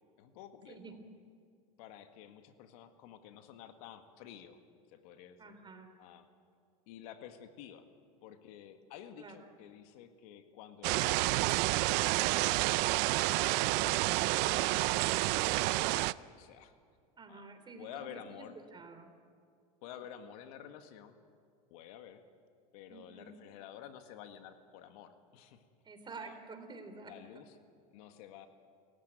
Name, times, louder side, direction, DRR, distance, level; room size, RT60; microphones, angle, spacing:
voice 1, 0.2-0.8 1.8-4.6 4.9-5.6 6.0-6.3 6.9-7.9 8.2-12.5 13.3-16.7 17.3-17.5 17.8-18.6 19.8-21.2 21.7-22.2 22.7-25.6 26.2-26.4 27.0-27.6 27.9-28.5, left 10 dB, 75° left, 7 dB, 1.8 m, -51 dB
voice 2, 5.4-5.9 9.2-9.4 17.2-18.4 18.7-19.1 22.9-23.3 25.8-27.2, right 4 dB, 25° right, 7 dB, 3.7 m, -49 dB
sound 1, 10.8-16.1, right 21 dB, 60° right, 0.5 m, -29 dB
29.5 x 15.0 x 9.1 m, 2.2 s
supercardioid pair, 105°, 19 cm